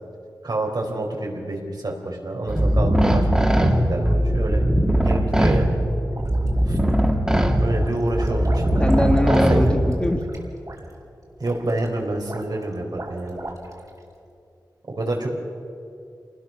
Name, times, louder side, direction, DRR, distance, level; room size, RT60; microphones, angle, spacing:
voice 1, 0.4-4.6 5.0-5.7 6.6-6.8 7.6-8.8 9.1-9.7 11.4-13.4 15.0-15.3, right 2 dB, 70° right, 0 dB, 4.6 m, -27 dB
sound 1, 2.5-10.2, equal, 10° right, 2.7 m, -20 dB
sound 2, 6.1-6.9 7.3-14.0, right 2 dB, 55° right, 4.3 m, -37 dB
voice 2, 8.8-10.2, left 1 dB, 15° left, 3 dB, 2.0 m, -21 dB
28.0 x 20.0 x 6.2 m, 2.5 s
wide cardioid pair, 65°, 7 cm